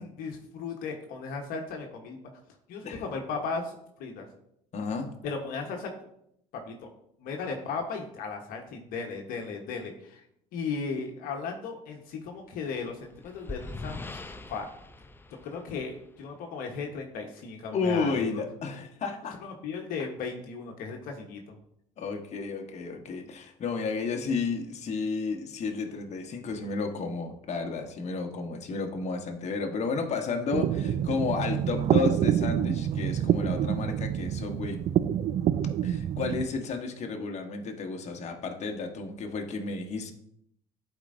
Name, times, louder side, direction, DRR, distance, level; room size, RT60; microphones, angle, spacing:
voice 1, 0.0-2.2 2.7-4.3 5.2-5.9 6.6-6.9 7.2-10.2 10.5-14.7 15.4-18.3 19.4-21.5, left 4 dB, 65° left, 2 dB, 1.1 m, -36 dB
voice 2, 4.7-5.1 17.7-19.4 20.0-20.1 22.0-34.8 35.8-40.1, left 4 dB, 45° left, 4 dB, 1.2 m, -32 dB
sound 1, 12.8-16.3, left 2 dB, 15° left, 0.5 m, -42 dB
sound 2, 30.5-36.4, right 10 dB, 45° right, 0.4 m, -27 dB
11.5 x 4.5 x 2.6 m, 0.75 s
hypercardioid pair, 65°, 16 cm